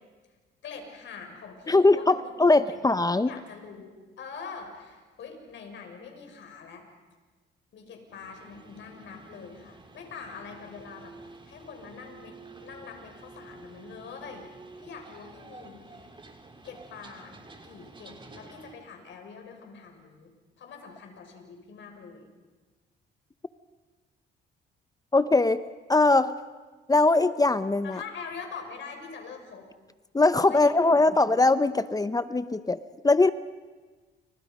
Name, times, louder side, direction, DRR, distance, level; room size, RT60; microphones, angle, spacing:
voice 1, 0.6-2.3 2.7-2.8 3.2-6.8 7.7-11.1 11.5-14.5 14.8-16.1 16.6-17.4 17.6-22.3 27.8-29.7 30.4-31.3, left 5 dB, 70° left, 3 dB, 6.3 m, -44 dB
voice 2, 1.7-3.3 25.1-25.6 25.9-26.3 26.9-28.0 30.1-32.8 33.0-33.3, left 2 dB, 20° left, 12 dB, 0.8 m, -21 dB
sound 1, 8.1-18.7, right 3 dB, 25° right, 3.4 m, -50 dB
30.0 x 29.5 x 5.4 m, 1.3 s
cardioid pair, 90°, 20 cm